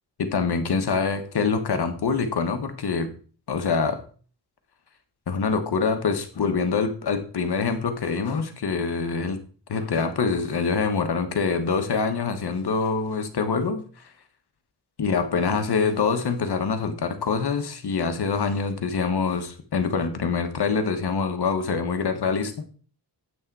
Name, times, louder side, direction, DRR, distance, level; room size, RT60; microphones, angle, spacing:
voice 1, 0.2-3.1 3.5-4.0 5.3-9.4 9.7-13.8 15.0-22.5, left 5 dB, 70° left, 8 dB, 1.3 m, -25 dB
8.3 x 6.4 x 4.7 m, 0.41 s
wide cardioid pair, 170°, 40 cm